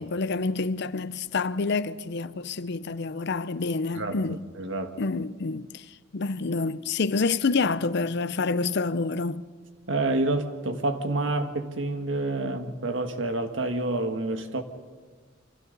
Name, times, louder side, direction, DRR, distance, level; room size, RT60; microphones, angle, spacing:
voice 1, 0.0-4.4 5.0-9.4, left 4 dB, 60° left, 0.6 m, -28 dB
voice 2, 3.9-5.0 9.9-14.6, right 2 dB, 70° right, 1.7 m, -28 dB
28.5 x 25.0 x 4.0 m
head